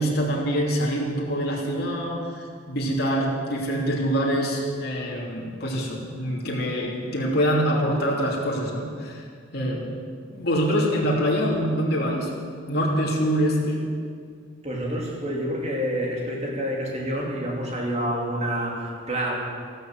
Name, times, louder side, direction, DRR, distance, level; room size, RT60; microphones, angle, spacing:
voice 1, 0.0-9.2 9.5-9.9 10.3-12.3 12.7-13.9, equal, 50° left, -3 dB, 3.0 m, -25 dB
voice 2, 14.6-19.4, equal, 35° right, -2 dB, 3.0 m, -28 dB
14.0 x 12.5 x 7.8 m, 2.1 s
head